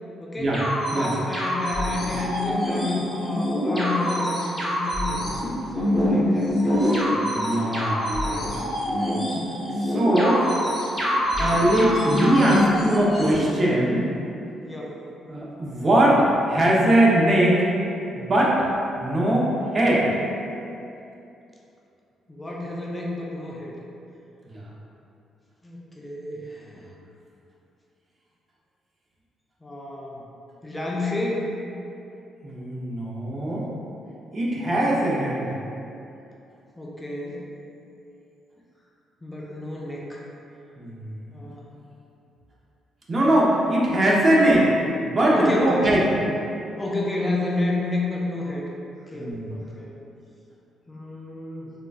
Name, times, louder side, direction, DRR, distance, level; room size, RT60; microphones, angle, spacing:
voice 1, 0.2-0.6 0.9-5.2 5.7-7.2 7.6-7.8 8.2-8.7 14.6-15.0 22.3-23.8 25.6-27.0 29.6-30.3 30.6-31.5 36.8-37.4 39.2-40.2 41.3-41.7 45.3-45.9 46.8-48.7 49.1-49.9 50.9-51.7, left 2 dB, 15° left, -4 dB, 0.4 m, -30 dB
sound 1, 0.5-13.3, equal, ahead, 0.8 m, -25 dB
voice 2, 7.1-9.5 9.8-10.5 11.4-14.0 15.3-17.6 18.1-18.6 19.0-20.1 24.5-24.6 32.4-33.7 34.3-35.6 40.8-41.1 43.1-44.7 45.0-46.0 49.1-49.5, right 1 dB, 35° right, -5 dB, 0.6 m, -21 dB
3.7 x 2.2 x 2.3 m, 2.7 s
cardioid pair, 90°, 0 cm